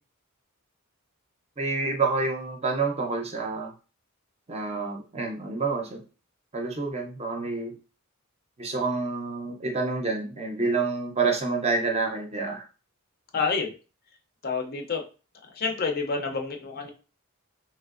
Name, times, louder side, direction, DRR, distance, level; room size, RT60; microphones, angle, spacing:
voice 1, 1.6-3.7 4.5-6.0 6.5-7.7 8.6-12.6, right 3 dB, 30° right, 2 dB, 0.5 m, -28 dB
voice 2, 13.3-13.7 14.4-15.0 15.5-16.9, left 5 dB, 45° left, 3 dB, 0.5 m, -28 dB
3.2 x 2.9 x 2.4 m, 0.35 s
head